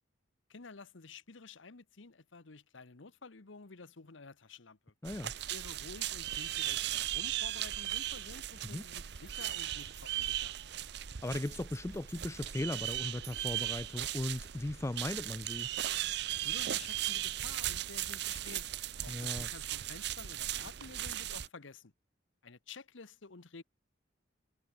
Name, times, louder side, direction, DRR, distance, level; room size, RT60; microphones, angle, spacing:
voice 1, 0.5-4.9 5.4-10.5 16.4-18.7 19.0-21.9 22.4-23.6, left 4 dB, 75° left, 1.1 m, -51 dB
sound 1, 5.1-21.5, right 13 dB, 55° right, 0.6 m, -37 dB
sound 2, 9.4-14.3, right 5 dB, 15° right, 2.4 m, -64 dB
voice 2, 11.2-15.7 19.1-19.5, left 1 dB, 15° left, 0.4 m, -37 dB
sound 3, 15.7-21.5, right 1 dB, 35° right, 3.8 m, -61 dB
head